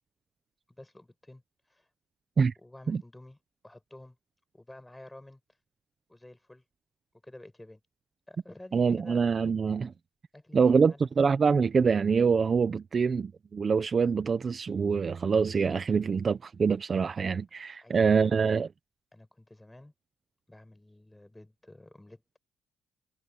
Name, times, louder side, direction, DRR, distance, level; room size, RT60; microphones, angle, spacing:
voice 1, 0.7-1.4 1.7-1.9 2.6-3.4 3.6-4.2 4.5-5.4 6.1-6.6 7.2-7.8 8.3-9.3 10.3-11.1 17.8-18.3 19.1-19.9 20.5-22.2, left 1 dB, 10° left, 7.2 m, -50 dB
voice 2, 8.7-9.9 10.5-18.7, right 5 dB, 40° right, 0.9 m, -25 dB
cardioid pair, 95°, 0 cm